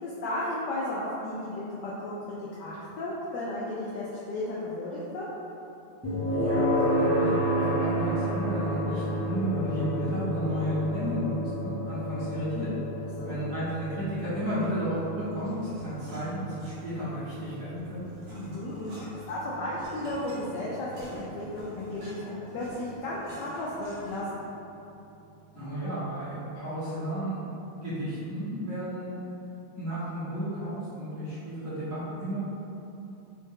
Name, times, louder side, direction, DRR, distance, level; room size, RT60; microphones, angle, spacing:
voice 1, 0.0-2.2 2.6-5.3 13.2-13.4 18.3-18.9 19.3-24.4, left 1 dB, 85° left, -7 dB, 0.9 m, -34 dB
sound 1, 6.0-21.0, equal, 20° right, 0.4 m, -31 dB
voice 2, 6.3-11.3 11.6-12.7 13.2-18.0 25.5-27.4 27.8-29.1 29.8-32.4, equal, 40° right, -13 dB, 1.6 m, -33 dB
sound 2, 15.4-17.1 17.4-24.4, right 1 dB, 65° right, 1.5 m, -48 dB
4.3 x 2.7 x 3.6 m, 2.8 s
omnidirectional pair, 2.4 m